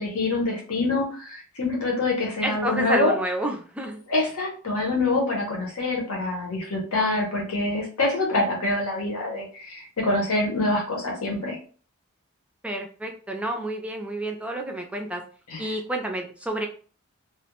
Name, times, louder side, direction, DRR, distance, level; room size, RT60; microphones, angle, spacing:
voice 1, 0.0-3.1 4.1-11.6 15.5-15.7, left 2 dB, 85° left, -1 dB, 0.8 m, -25 dB
voice 2, 2.4-4.0 12.6-15.2 15.6-16.7, right 1 dB, 5° right, 2 dB, 0.3 m, -29 dB
2.3 x 2.1 x 2.9 m, 0.40 s
head